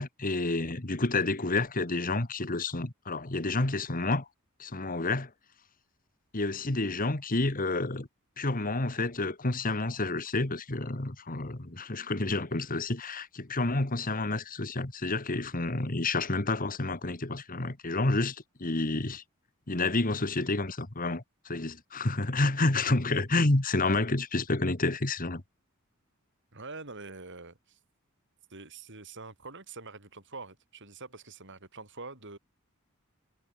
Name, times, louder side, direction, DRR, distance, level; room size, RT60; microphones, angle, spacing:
voice 1, 0.0-4.3 4.6-5.3 6.3-8.1 8.4-19.2 19.7-25.4, left 2 dB, 40° left, 1.9 m, -29 dB
voice 2, 26.5-27.8 28.5-32.4, right 3 dB, 60° right, 7.1 m, -45 dB
head